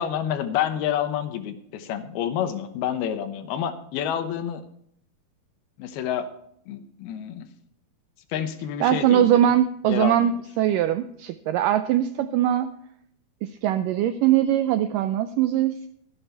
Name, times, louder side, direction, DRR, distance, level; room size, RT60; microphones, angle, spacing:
voice 1, 0.0-4.6 5.8-6.3 6.7-7.5 8.3-9.5 9.8-10.3, left 9 dB, 80° left, 9 dB, 2.9 m, -28 dB
voice 2, 8.8-12.7 13.4-15.9, right 11 dB, 85° right, 10 dB, 1.9 m, -21 dB
13.0 x 11.0 x 4.5 m, 0.69 s
omnidirectional pair, 4.4 m